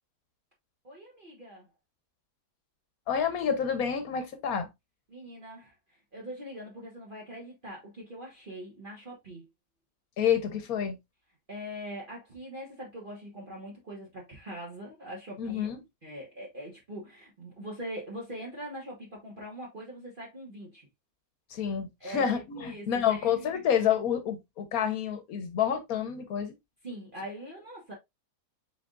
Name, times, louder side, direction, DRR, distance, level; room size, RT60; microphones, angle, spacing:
voice 1, 0.8-1.7 5.1-9.5 11.5-15.7 16.0-20.9 22.0-23.6 26.8-27.9, equal, 35° right, 1.4 m, -42 dB
voice 2, 3.1-4.7 10.2-11.0 15.4-15.8 21.5-26.5, left 8 dB, 65° left, 1.3 m, -28 dB
4.7 x 4.3 x 2.3 m
omnidirectional pair, 1.7 m